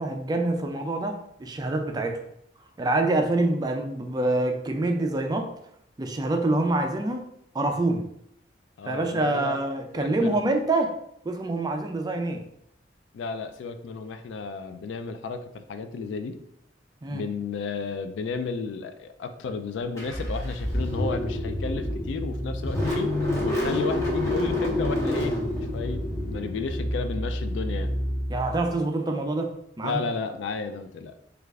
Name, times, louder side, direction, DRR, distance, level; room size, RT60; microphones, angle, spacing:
voice 1, 0.0-2.2 2.8-5.5 6.0-7.2 7.5-8.1 8.9-11.0 11.2-12.4 17.0-17.2 28.3-30.0, right 2 dB, 20° right, 4 dB, 0.3 m, -26 dB
voice 2, 8.8-9.6 9.9-10.4 13.1-16.4 17.1-27.9 29.8-31.2, left 4 dB, 75° left, 9 dB, 0.3 m, -33 dB
Car / Engine starting, 20.0-28.7, left 1 dB, 15° left, 0.7 m, -28 dB
3.2 x 2.4 x 3.4 m, 0.74 s
head